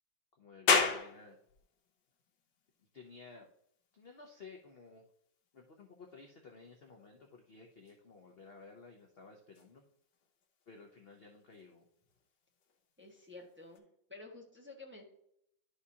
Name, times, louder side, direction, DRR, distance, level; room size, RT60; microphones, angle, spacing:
voice 1, 0.4-1.4 2.9-3.5 3.9-5.0 5.5-9.8 10.7-11.8, left 4 dB, 55° left, 2 dB, 0.6 m, -55 dB
sound 1, 0.7-13.8, left 5 dB, 80° left, 1.6 m, -40 dB
voice 2, 13.0-15.0, left 3 dB, 10° right, -1 dB, 1.0 m, -51 dB
11.0 x 4.9 x 2.8 m, 0.73 s
omnidirectional pair, 2.0 m